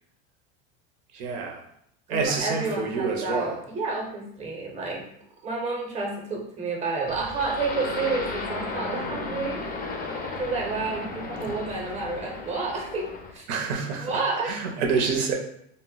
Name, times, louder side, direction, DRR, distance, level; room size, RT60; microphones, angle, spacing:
voice 1, 1.1-1.7 2.1-3.6 11.5-11.6 13.5-15.3, right 5 dB, 90° right, 2 dB, 0.6 m, -28 dB
voice 2, 2.1-5.1 5.4-9.7 10.4-13.4 14.0-14.5, right 3 dB, 20° right, 0 dB, 0.6 m, -30 dB
sound 1, 7.1-13.4, left 3 dB, 30° left, 0.4 m, -34 dB
2.1 x 2.1 x 3.7 m, 0.71 s
supercardioid pair, 120°, 31 cm